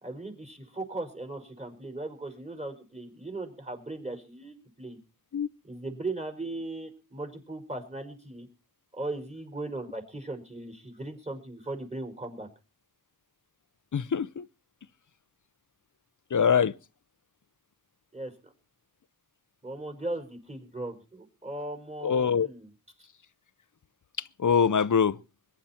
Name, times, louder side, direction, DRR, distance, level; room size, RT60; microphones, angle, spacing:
voice 1, 0.0-5.0 5.6-8.5 8.9-12.5 18.1-18.3 19.6-22.7 23.0-23.1, right 2 dB, 20° right, 4.8 m, -38 dB
voice 2, 13.9-14.5 16.3-16.7 22.0-22.5 24.4-25.2, left 7 dB, 55° left, 0.7 m, -23 dB
22.0 x 10.5 x 4.4 m
wide cardioid pair, 55°, 37 cm